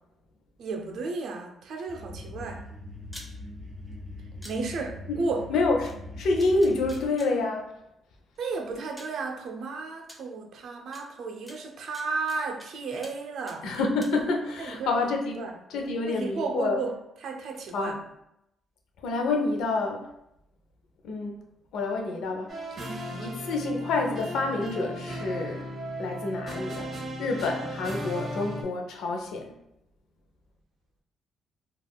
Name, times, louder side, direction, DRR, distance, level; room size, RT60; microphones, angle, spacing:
voice 1, 0.6-2.6 4.4-5.5 8.4-13.7 14.6-15.0 15.3-15.6 16.1-16.9 17.2-18.0 22.8-23.4, right 4 dB, 70° right, 3 dB, 0.5 m, -33 dB
sound 1, 1.9-7.1, left 2 dB, 35° right, 1.3 m, -42 dB
sound 2, 3.0-3.3 4.4-4.5 5.8-5.9 6.4-7.3 8.4-8.5 9.0-9.2 10.1-10.2 10.9-11.0 11.5-12.7 13.0-13.2 13.5-14.1, equal, 5° left, 0.6 m, -46 dB
voice 2, 5.5-7.7 13.6-15.4 15.7-16.8 17.7-18.0 19.0-20.1 21.0-21.4 21.7-22.8 23.2-25.7 26.0-26.9 27.2-29.5, left 3 dB, 80° left, 2 dB, 0.5 m, -28 dB
sound 3, 22.5-28.6, equal, 50° right, 0.8 m, -36 dB
3.4 x 2.3 x 2.2 m, 0.81 s
cardioid pair, 90°, 0 cm